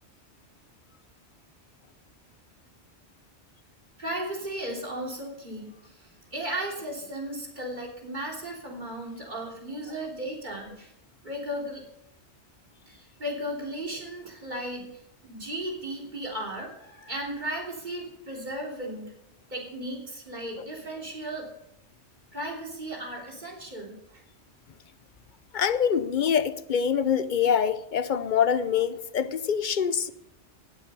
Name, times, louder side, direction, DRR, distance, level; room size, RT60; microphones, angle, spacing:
voice 1, 4.0-10.9 11.2-11.8 12.9-19.0 19.5-21.5 22.3-24.2, right 1 dB, 40° right, 3.3 m, -35 dB
voice 2, 25.5-30.1, left 7 dB, 50° left, 0.7 m, -25 dB
18.5 x 7.1 x 5.5 m
omnidirectional pair, 1.2 m